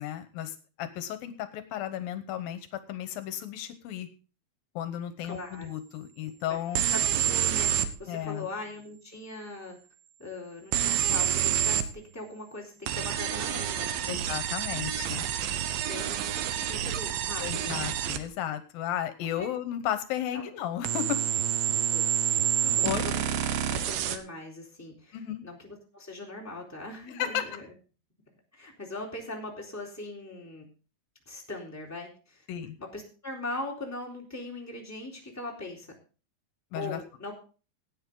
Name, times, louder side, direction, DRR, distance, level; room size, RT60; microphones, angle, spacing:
voice 1, 0.0-4.1 4.8-6.8 8.1-8.5 14.1-15.3 17.4-21.2 22.5-23.1 25.1-25.4 27.1-27.4 32.5-32.8 36.7-37.0, left 11 dB, 80° left, 10 dB, 2.8 m, -34 dB
voice 2, 5.2-5.7 6.5-6.6 7.1-9.8 10.2-14.1 15.9-17.7 19.4-19.5 20.3-20.5 21.9-22.1 22.8-23.2 23.7-27.7 28.5-30.7 31.2-32.4 32.8-35.9 36.7-37.3, left 2 dB, 5° left, -2 dB, 3.3 m, -40 dB
sound 1, 6.8-7.9 10.7-11.9 12.9-18.2 20.8-24.2, right 10 dB, 90° right, 2.8 m, -28 dB
17.5 x 9.2 x 3.8 m, 0.36 s
omnidirectional pair, 4.1 m